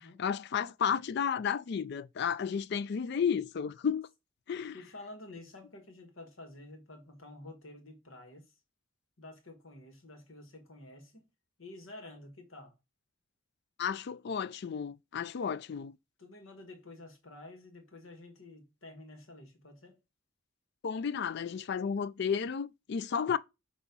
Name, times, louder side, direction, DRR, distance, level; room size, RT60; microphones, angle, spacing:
voice 1, 0.0-4.1 4.5-4.8 13.8-16.0 20.8-23.4, left 7 dB, 50° left, 0.3 m, -32 dB
voice 2, 4.7-8.5 9.2-11.3 11.6-12.8 16.2-20.0, left 2 dB, 75° left, 1.7 m, -50 dB
7.0 x 3.0 x 5.3 m
head